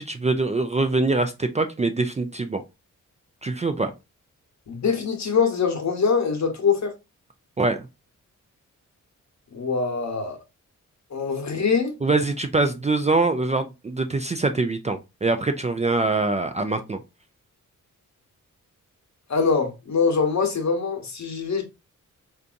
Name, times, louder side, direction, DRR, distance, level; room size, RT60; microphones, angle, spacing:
voice 1, 0.0-2.6 3.4-3.9 7.6-7.9 12.0-17.0, right 3 dB, 20° right, 0.4 m, -24 dB
voice 2, 4.7-6.9 9.5-10.4 11.1-12.0 19.3-21.6, left 5 dB, 55° left, 1.0 m, -23 dB
3.4 x 2.6 x 2.5 m
cardioid pair, 65°, 33 cm